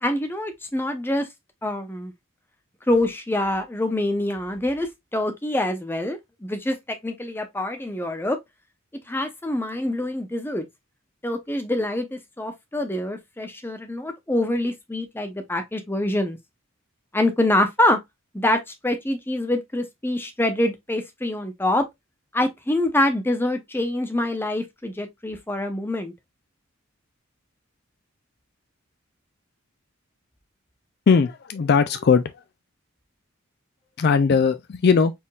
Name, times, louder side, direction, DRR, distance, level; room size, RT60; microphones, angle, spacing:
voice 1, 0.0-1.3 1.6-2.1 2.9-8.4 9.1-10.6 11.2-16.4 17.1-18.0 18.3-21.8 22.3-26.1, left 1 dB, 10° left, 0.7 m, -25 dB
voice 2, 31.1-32.2 34.0-35.1, left 5 dB, 50° left, 0.4 m, -19 dB
4.3 x 3.6 x 2.3 m
head